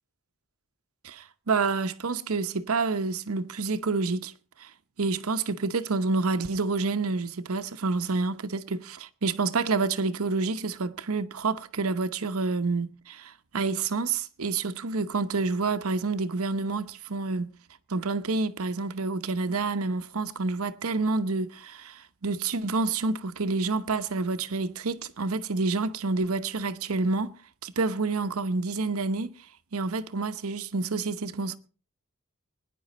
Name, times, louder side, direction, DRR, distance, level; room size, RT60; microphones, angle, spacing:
voice 1, 1.0-4.3 4.6-4.7 5.0-17.5 17.9-27.3 27.6-29.3 29.7-31.6, right 3 dB, 90° right, 0.9 m, -28 dB
22.0 x 10.0 x 4.2 m
head